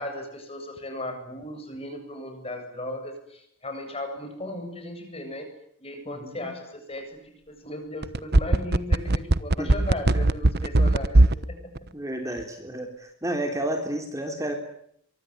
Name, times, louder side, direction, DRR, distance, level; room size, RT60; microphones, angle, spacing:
voice 1, 0.0-5.5 5.8-11.9 12.2-12.4, left 1 dB, 30° left, 6 dB, 7.7 m, -36 dB
voice 2, 6.1-6.5 9.6-9.7 11.9-14.5, right 1 dB, 15° right, 4 dB, 3.4 m, -31 dB
sound 1, 8.0-11.4 11.8-11.9, right 2 dB, 55° right, 1.1 m, -18 dB
24.0 x 24.0 x 9.7 m, 0.70 s
head